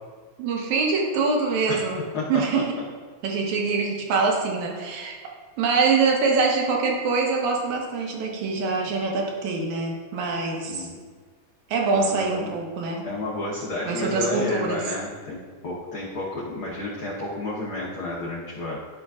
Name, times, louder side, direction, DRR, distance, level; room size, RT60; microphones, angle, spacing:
voice 1, 0.4-2.0 2.3-2.7 3.2-5.2 5.6-10.9 11.7-13.0 13.9-14.8, right 4 dB, 65° right, 0 dB, 2.2 m, -24 dB
voice 2, 2.1-2.6 10.7-11.0 11.9-12.5 13.0-18.8, left 2 dB, 70° left, -5 dB, 1.2 m, -31 dB
12.0 x 6.1 x 2.4 m, 1.5 s
omnidirectional pair, 3.8 m